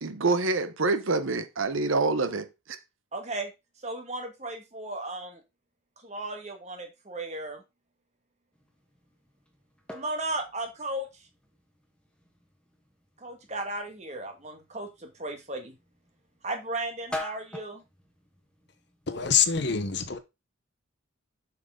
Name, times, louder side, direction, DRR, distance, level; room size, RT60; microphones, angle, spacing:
voice 1, 0.0-2.5, right 3 dB, 75° right, 0.9 m, -26 dB
voice 2, 3.1-3.5 3.8-5.4 6.0-7.6 9.9-11.1 13.2-15.8 16.4-17.8, right 2 dB, 35° right, 1.6 m, -35 dB
sound 1, 8.5-19.2, left 1 dB, 5° left, 1.2 m, -46 dB
voice 3, 19.1-20.2, left 7 dB, 55° left, 0.9 m, -25 dB
7.7 x 5.9 x 3.7 m
head